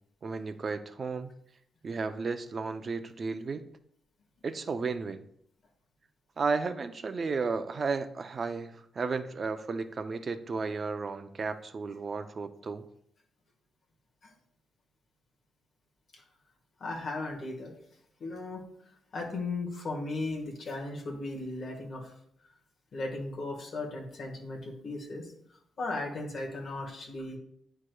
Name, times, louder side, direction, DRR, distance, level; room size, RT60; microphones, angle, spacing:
voice 1, 0.2-1.4 1.8-3.7 4.4-5.2 6.4-12.8, right 4 dB, 35° right, 9 dB, 0.4 m, -33 dB
voice 2, 16.8-17.7 18.2-18.6 19.1-22.1 22.9-25.3 25.8-27.4, left 2 dB, 40° left, 0 dB, 1.4 m, -36 dB
9.7 x 4.6 x 2.2 m, 0.69 s
wide cardioid pair, 160°, 0 cm